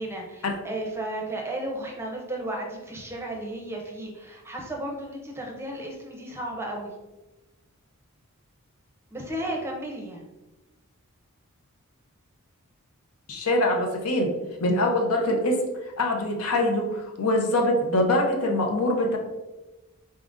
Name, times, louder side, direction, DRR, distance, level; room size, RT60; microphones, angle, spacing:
voice 1, 0.0-6.9 9.1-10.2, right 1 dB, 10° right, 0 dB, 0.6 m, -34 dB
voice 2, 13.3-14.3 14.6-15.6 16.0-19.2, left 1 dB, 90° left, 2 dB, 0.7 m, -23 dB
4.0 x 3.6 x 2.5 m, 1.1 s
head